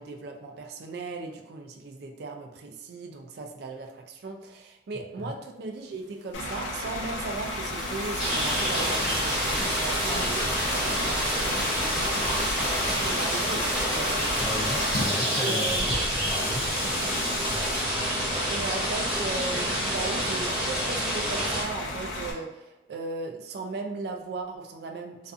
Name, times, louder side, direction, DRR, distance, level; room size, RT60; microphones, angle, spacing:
voice 1, 0.0-14.1 15.3-16.1 16.8-17.2 18.5-25.3, right 3 dB, 60° right, 4 dB, 0.3 m, -37 dB
Bus / Idling, 6.3-22.3, left 1 dB, 85° left, 0.5 m, -34 dB
sound 1, 6.8-15.1, equal, 40° left, 0.8 m, -33 dB
sound 2, 8.2-21.6, equal, 5° right, 0.8 m, -29 dB
voice 2, 14.3-18.0, left 1 dB, 20° left, -2 dB, 0.4 m, -37 dB
2.4 x 2.4 x 2.4 m, 0.98 s
head